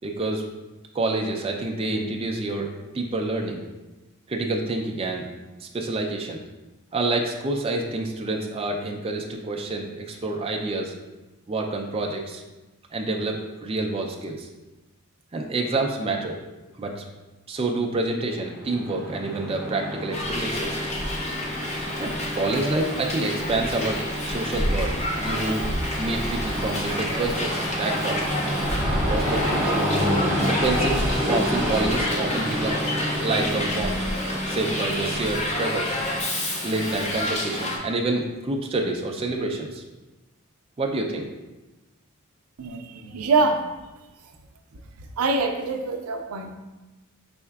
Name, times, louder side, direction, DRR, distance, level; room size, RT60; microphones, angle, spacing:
voice 1, 0.0-0.5 0.9-3.6 4.3-5.3 5.6-6.4 6.9-10.9 11.5-12.4 12.9-14.5 15.3-16.4 16.8-17.0 17.5-20.8 22.0-25.7 26.0-28.4 28.9-29.7 30.4-32.8 33.2-34.1 34.5-36.0 36.6-39.8 40.8-41.3, right 2 dB, 25° right, 1 dB, 0.3 m, -28 dB
Train, 18.3-36.9, equal, 10° right, 1.2 m, -29 dB
Hiss, 20.1-37.8, left 1 dB, 30° left, 0.6 m, -29 dB
voice 2, 42.6-43.6 45.2-46.6, right 3 dB, 80° right, 5 dB, 0.5 m, -24 dB
4.6 x 4.2 x 2.3 m, 1.1 s
head